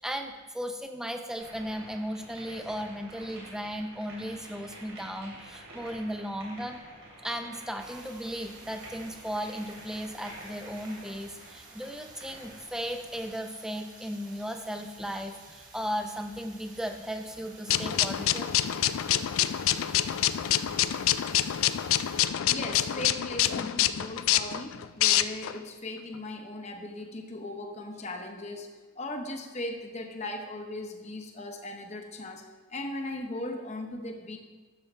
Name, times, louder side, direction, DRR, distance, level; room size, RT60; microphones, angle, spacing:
voice 1, 0.0-6.8 7.2-18.5, equal, 5° right, 5 dB, 0.5 m, -36 dB
sound 1, 1.4-13.4, right 1 dB, 80° right, 3.0 m, -49 dB
sound 2, 7.8-22.2, right 3 dB, 40° right, 1.3 m, -52 dB
sound 3, 17.7-25.6, left 12 dB, 85° left, 0.3 m, -26 dB
voice 2, 22.2-32.4 32.7-34.4, left 2 dB, 35° left, 4 dB, 0.9 m, -38 dB
12.0 x 7.1 x 3.3 m, 1.3 s
head